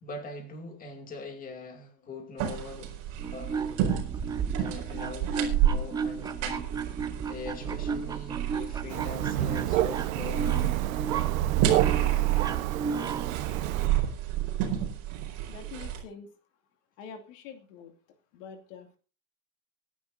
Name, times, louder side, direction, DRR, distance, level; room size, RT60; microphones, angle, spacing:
voice 1, 0.0-2.9 3.3-3.8 4.5-6.7 7.3-10.8, left 3 dB, 20° left, 2.5 m, -42 dB
sound 1, 2.4-16.0, right 11 dB, 40° right, 4.5 m, -30 dB
sound 2, 3.1-13.4, right 6 dB, 10° right, 0.6 m, -34 dB
Thunder, 8.9-13.9, right 14 dB, 80° right, 1.1 m, -30 dB
voice 2, 15.5-16.3 17.0-17.9 18.3-19.0, left 6 dB, 65° left, 2.5 m, -45 dB
24.5 x 11.0 x 2.6 m
supercardioid pair, 165°, 41 cm